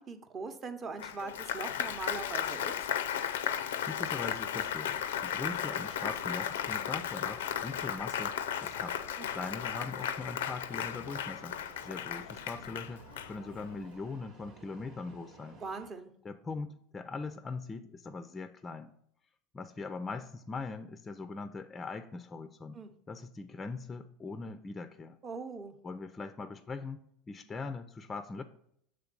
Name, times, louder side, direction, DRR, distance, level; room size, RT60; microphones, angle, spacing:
voice 1, 0.0-2.7 9.2-9.3 15.6-16.1 22.7-22.9 25.2-25.8, right 4 dB, 35° right, 8 dB, 0.8 m, -41 dB
Applause, 1.0-13.7, left 9 dB, 90° left, 0.4 m, -35 dB
voice 2, 3.8-8.4 8.6-9.0 9.3-11.6 11.8-15.6 16.2-18.9 19.5-22.8 23.1-25.2 25.8-27.0 27.3-28.4, left 4 dB, 20° left, 10 dB, 0.4 m, -41 dB
sound 1, 4.0-15.9, right 4 dB, 55° right, 1.0 m, -55 dB
6.9 x 3.4 x 5.2 m, 0.70 s
supercardioid pair, 105°, 0 cm